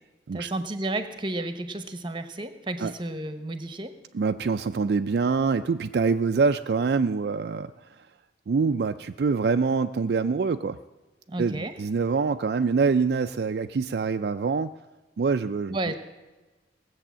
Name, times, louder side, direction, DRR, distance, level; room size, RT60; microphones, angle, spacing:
voice 1, 0.3-4.0 11.3-11.8 15.7-15.9, right 2 dB, 25° right, 10 dB, 0.9 m, -32 dB
voice 2, 4.1-7.7 8.5-10.8 11.4-14.7 15.2-15.8, right 4 dB, 60° right, 8 dB, 0.4 m, -25 dB
18.0 x 7.8 x 7.3 m, 1.2 s
head